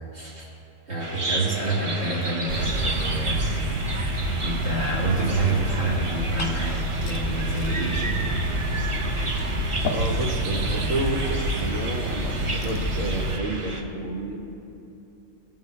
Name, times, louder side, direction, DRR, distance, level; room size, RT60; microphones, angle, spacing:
voice 1, 0.1-0.5 0.9-3.4 4.4-8.2, right 2 dB, 45° right, -9 dB, 2.5 m, -28 dB
Bird vocalization bird call bird song, 1.0-13.8, right 2 dB, 25° right, 0.8 m, -33 dB
sound 1, 2.5-13.4, right 1 dB, 65° right, 1.0 m, -28 dB
Glass / Fill (with liquid), 5.9-13.0, left 6 dB, 80° left, 1.0 m, -41 dB
voice 2, 9.9-14.4, right 2 dB, 80° right, 1 dB, 1.5 m, -30 dB
19.0 x 7.2 x 3.2 m, 3.0 s
omnidirectional pair, 1.4 m